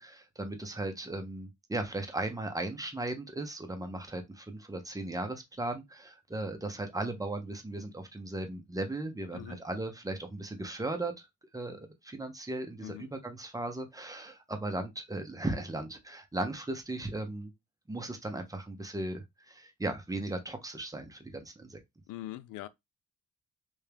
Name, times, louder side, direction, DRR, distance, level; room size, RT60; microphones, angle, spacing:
voice 1, 0.0-11.3 11.5-17.5 17.9-21.8, right 2 dB, 10° right, 1.0 m, -37 dB
voice 2, 22.1-22.7, left 14 dB, 90° left, 0.5 m, -42 dB
3.5 x 2.7 x 3.4 m
cardioid pair, 90°, 30 cm